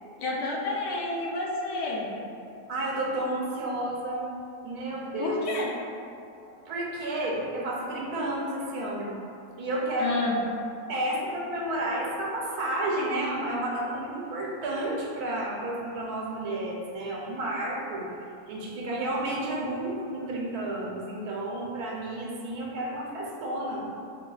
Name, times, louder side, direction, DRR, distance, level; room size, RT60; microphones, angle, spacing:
voice 1, 0.2-2.1 5.2-5.7 10.0-10.4, left 2 dB, 70° left, -3 dB, 0.6 m, -30 dB
voice 2, 2.7-4.3 4.6-5.4 6.4-10.2 10.9-18.0 18.5-23.8, right 1 dB, 80° right, -3 dB, 1.1 m, -31 dB
3.3 x 2.9 x 2.3 m, 2.5 s
omnidirectional pair, 1.6 m